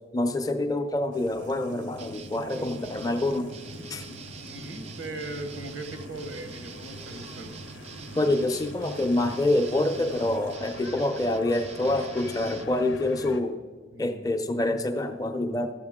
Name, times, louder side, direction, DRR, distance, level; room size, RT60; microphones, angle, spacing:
voice 1, 0.1-3.6 3.9-4.0 8.1-13.6 14.0-15.7, left 1 dB, 20° left, 5 dB, 0.6 m, -26 dB
sound 1, 1.1-10.6, right 1 dB, 70° right, 0.8 m, -45 dB
sound 2, 1.4-13.4, left 2 dB, 65° left, 0.6 m, -47 dB
sound 3, 2.0-12.7, right 5 dB, 30° right, 0.3 m, -45 dB
voice 2, 4.4-7.5 13.9-14.3, right 2 dB, 85° right, 6 dB, 1.2 m, -39 dB
13.0 x 7.8 x 3.6 m, 1.4 s
head